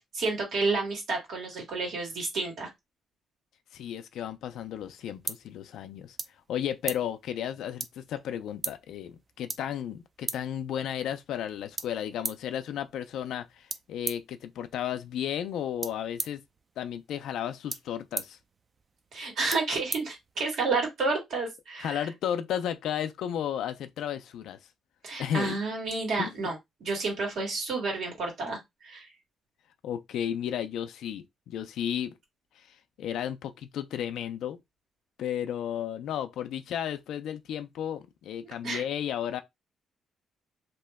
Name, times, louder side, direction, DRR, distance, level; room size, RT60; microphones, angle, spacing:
voice 1, 0.1-2.7 19.1-22.0 25.0-26.5 26.8-29.1 38.6-38.8, right 3 dB, 70° right, 1.7 m, -30 dB
voice 2, 3.7-6.2 6.5-16.4 16.8-18.4 21.8-24.6 25.2-25.6 26.2-26.5 29.8-32.2 33.0-34.6 35.2-39.4, left 9 dB, 80° left, 0.4 m, -33 dB
sound 1, 4.5-20.8, right 4 dB, 35° right, 0.4 m, -42 dB
2.8 x 2.1 x 3.4 m
cardioid pair, 90°, 0 cm